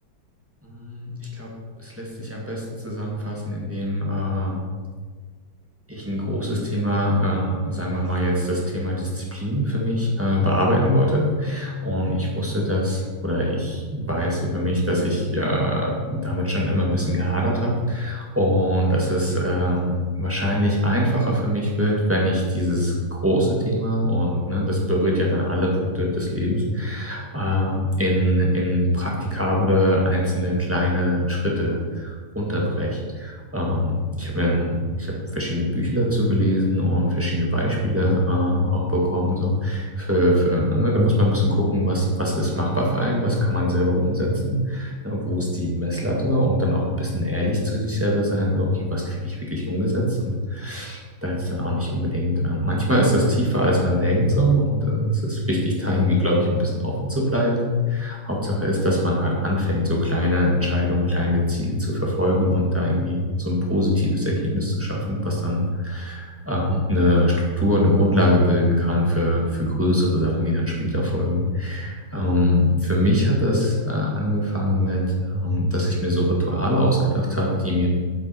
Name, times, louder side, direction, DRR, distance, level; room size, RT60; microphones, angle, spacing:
voice 1, 0.6-1.5 1.8-4.6 5.9-19.9 20.2-77.9, equal, 10° right, -3 dB, 1.6 m, -22 dB
8.1 x 7.9 x 4.4 m, 1.5 s
omnidirectional pair, 2.0 m